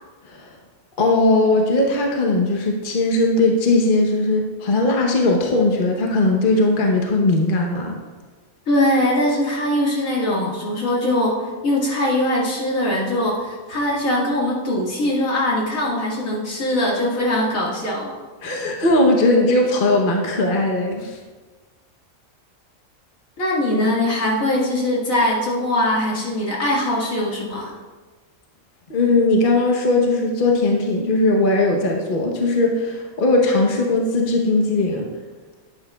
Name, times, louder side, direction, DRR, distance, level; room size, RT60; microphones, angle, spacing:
voice 1, 1.0-7.9 18.4-21.2 28.9-35.1, left 2 dB, 40° left, 0 dB, 1.0 m, -19 dB
voice 2, 8.7-18.2 23.4-27.7, left 1 dB, 70° left, -4 dB, 2.3 m, -21 dB
11.5 x 8.8 x 2.3 m, 1.3 s
omnidirectional pair, 1.5 m